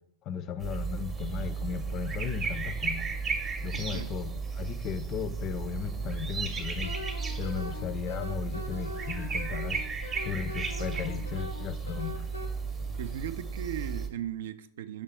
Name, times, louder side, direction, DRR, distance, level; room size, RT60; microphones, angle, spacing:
voice 1, 0.2-3.1 3.6-4.3 4.6-7.0 7.4-9.8 10.2-12.2, left 8 dB, 35° left, 12 dB, 0.4 m, -36 dB
sound 1, 0.6-14.1, right 5 dB, 20° right, 0.7 m, -34 dB
voice 2, 3.7-4.2 13.0-15.0, right 10 dB, 60° right, 13 dB, 0.3 m, -37 dB
Wind instrument woodwind instrument, 6.8-12.5, left 3 dB, 80° left, 0.6 m, -42 dB
6.5 x 3.4 x 4.4 m, 0.73 s
figure-of-eight pair, 90°, 0 cm